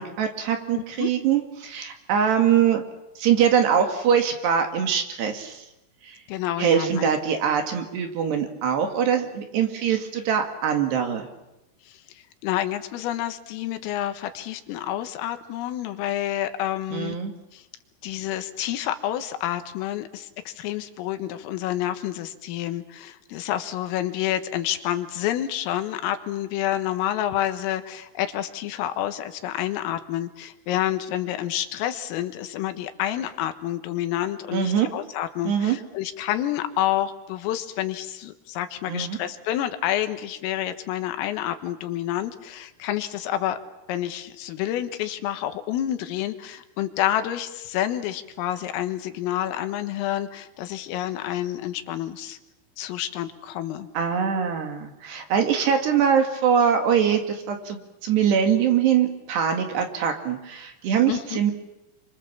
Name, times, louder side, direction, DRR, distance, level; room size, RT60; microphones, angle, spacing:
voice 1, 0.0-2.8 3.2-5.6 6.0-6.2 6.6-11.3 16.9-17.3 34.5-34.9 35.5-35.8 38.9-39.2 53.9-61.5, right 8 dB, 60° right, 5 dB, 4.0 m, -23 dB
voice 2, 0.8-1.1 6.3-7.1 11.9-12.0 12.4-17.2 17.5-17.6 18.0-43.6 43.9-52.4 52.8-53.9 61.1-61.4, left 12 dB, 85° left, 8 dB, 4.0 m, -28 dB
30.0 x 25.0 x 7.3 m, 0.93 s
omnidirectional pair, 5.9 m